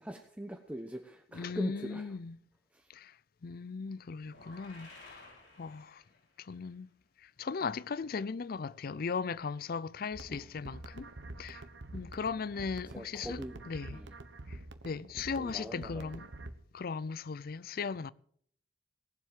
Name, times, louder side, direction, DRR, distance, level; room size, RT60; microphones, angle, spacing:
voice 1, 0.0-2.1 2.7-2.9 10.3-10.6 12.5-14.1 15.3-16.2, equal, 10° right, 1.0 m, -43 dB
voice 2, 1.3-2.4 2.9-3.2 3.4-6.0 6.4-6.9 7.2-11.1 11.4-11.6 11.9-13.4 13.7-14.0 14.5-16.3 16.7-18.1, left 5 dB, 55° left, 0.5 m, -38 dB
sound 1, 4.2-6.4, left 2 dB, 75° left, 6.6 m, -55 dB
sound 2, 10.1-16.5, right 2 dB, 85° right, 1.2 m, -47 dB
18.5 x 7.6 x 7.4 m
head